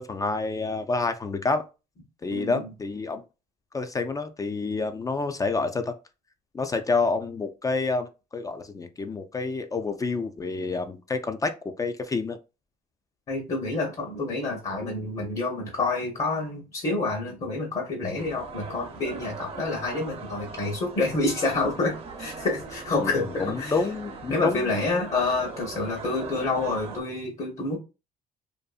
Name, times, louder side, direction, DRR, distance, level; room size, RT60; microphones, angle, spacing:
voice 1, 0.0-1.6 2.2-3.2 3.7-5.9 6.5-12.4 23.0-25.0, left 3 dB, 20° left, 8 dB, 0.3 m, -28 dB
voice 2, 2.3-2.6 13.3-23.8 24.3-27.8, left 3 dB, 40° left, 0 dB, 0.8 m, -28 dB
sound 1, 18.2-27.0, right 4 dB, 35° right, 0.6 m, -40 dB
2.6 x 2.5 x 2.3 m, 0.29 s
cardioid pair, 110°, 17 cm